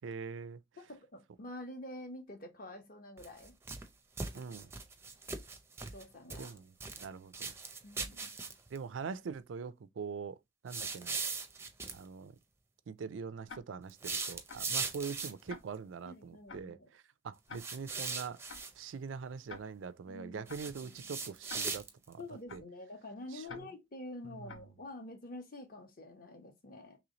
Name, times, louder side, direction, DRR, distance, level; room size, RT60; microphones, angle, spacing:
voice 1, 0.0-0.6 4.3-4.7 6.4-6.7 7.0-7.5 8.7-10.4 10.6-11.2 11.9-12.4 12.9-18.4 18.8-22.2 22.5-22.6 23.3-23.7 24.2-24.5, right 5 dB, 85° right, 0.4 m, -43 dB
voice 2, 0.8-3.5 5.9-6.5 7.8-8.3 16.0-16.9 20.1-20.5 20.8-21.1 22.2-27.0, left 1 dB, 50° left, 1.0 m, -47 dB
sound 1, 3.2-3.9 4.2-6.0 6.3-7.1 7.3-8.8 10.7-12.0 13.9-15.5 17.6-18.7 20.5-22.1, right 4 dB, 15° right, 0.5 m, -39 dB
Tick-tock, 13.5-13.6 14.5-14.6 15.5-15.6 16.5-16.6 17.5-17.6 18.5-18.6 19.5-19.6 20.5-20.6 21.5-21.6 22.5-22.6 23.5-23.6 24.5-24.6, left 4 dB, 75° left, 0.7 m, -47 dB
3.1 x 3.0 x 3.8 m
head